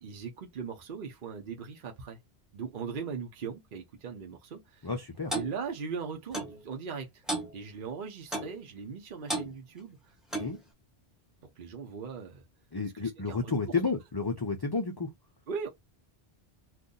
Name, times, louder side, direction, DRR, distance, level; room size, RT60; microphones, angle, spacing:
voice 1, 0.0-2.2 2.5-4.9 5.3-7.2 7.5-10.4 11.6-12.4 12.9-13.5 15.5-15.7, right 6 dB, 55° right, 0.9 m, -39 dB
voice 2, 4.8-5.3 10.4-10.6 12.7-15.1, left 4 dB, 35° left, 0.4 m, -31 dB
Clock, 5.3-5.5 6.3-6.6 7.3-7.5 8.3-8.6 9.3-9.5 10.3-10.6, right 1 dB, ahead, 0.8 m, -33 dB
2.6 x 2.5 x 3.7 m
omnidirectional pair, 1.1 m